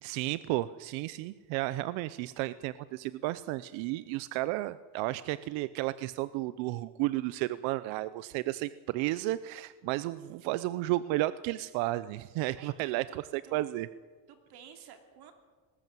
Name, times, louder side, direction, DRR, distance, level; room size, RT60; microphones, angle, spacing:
voice 1, 0.0-13.9, right 17 dB, 80° right, 15 dB, 0.8 m, -33 dB
voice 2, 12.6-13.2 13.4-13.7 14.3-15.3, right 8 dB, 55° right, 6 dB, 2.9 m, -52 dB
20.0 x 18.0 x 7.6 m, 1.4 s
cardioid pair, 155°, 45 cm